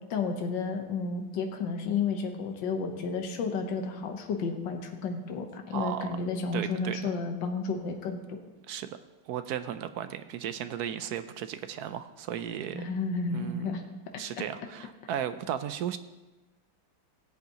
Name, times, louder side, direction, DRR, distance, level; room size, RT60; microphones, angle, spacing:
voice 1, 0.1-8.4 12.7-13.8, left 4 dB, 75° left, 4 dB, 1.7 m, -32 dB
voice 2, 5.7-6.2 6.5-7.0 8.7-8.9 9.3-12.8 13.3-13.7 14.2-16.0, right 9 dB, 70° right, 11 dB, 0.9 m, -35 dB
18.5 x 8.1 x 2.9 m, 1.1 s
omnidirectional pair, 2.0 m